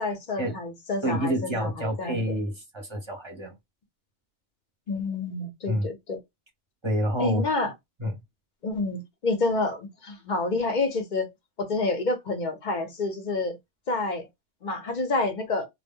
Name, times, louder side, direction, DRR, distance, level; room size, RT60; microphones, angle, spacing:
voice 1, 0.0-2.4 4.9-6.2 7.2-7.7 8.6-11.3 11.6-13.6 13.9-14.3 14.6-15.7, left 3 dB, 45° left, 0.7 m, -28 dB
voice 2, 1.0-3.5 5.7-5.9 6.8-7.4 8.0-8.1, equal, 30° right, 0.7 m, -28 dB
2.2 x 2.0 x 3.5 m
omnidirectional pair, 1.3 m